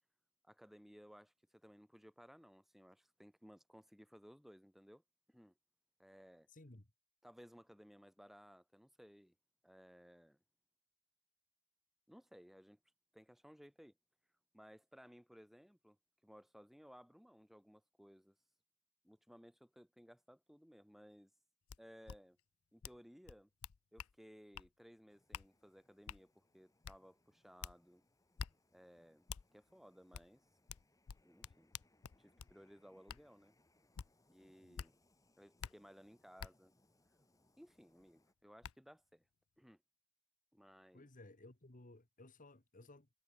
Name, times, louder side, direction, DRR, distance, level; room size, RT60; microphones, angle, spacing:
voice 1, 0.4-5.0 5.3-5.5 6.0-6.5 7.2-9.3 9.6-10.4 12.1-12.8 13.1-14.0 14.5-16.0 16.2-18.4 19.0-21.3 21.8-22.4 22.7-23.5 23.9-28.0 28.7-29.3 29.5-30.4 31.2-31.7 32.2-33.5 34.3-35.0 35.4-36.7 37.6-39.3 39.6-39.8 40.5-41.1, equal, ahead, 2.3 m, -60 dB
voice 2, 6.5-6.9 34.6-34.8 40.9-43.1, left 2 dB, 40° left, 1.8 m, -58 dB
sound 1, 21.7-21.8 22.1-22.2 22.8-23.0 23.3-24.1 24.5-24.7 25.3-25.5 26.1-26.2 26.8-27.0 27.6-27.8 28.4-28.5 29.3-29.4 30.1-30.3 30.7-32.5 33.1-33.2 34.0-34.1 34.8-34.9 35.6-35.7 36.4-36.5 38.0-38.1 38.6-38.7, left 7 dB, 75° left, 0.5 m, -47 dB
sound 2, 25.1-38.3, left 1 dB, 15° left, 7.6 m, -76 dB
head